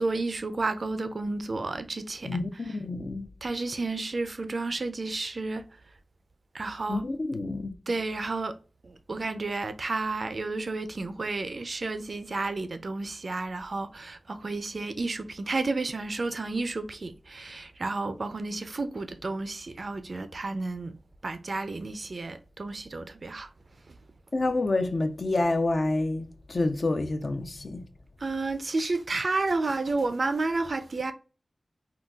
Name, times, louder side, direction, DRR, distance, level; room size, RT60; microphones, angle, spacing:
voice 1, 0.0-2.4 3.4-5.7 6.5-7.1 7.9-8.6 8.8-20.9 21.2-23.5 28.2-31.1, right 3 dB, 60° right, 0.4 m, -31 dB
voice 2, 2.2-3.3 6.9-7.7 24.3-27.8, left 2 dB, 60° left, 0.5 m, -28 dB
3.8 x 2.3 x 2.2 m
wide cardioid pair, 75°, 0 cm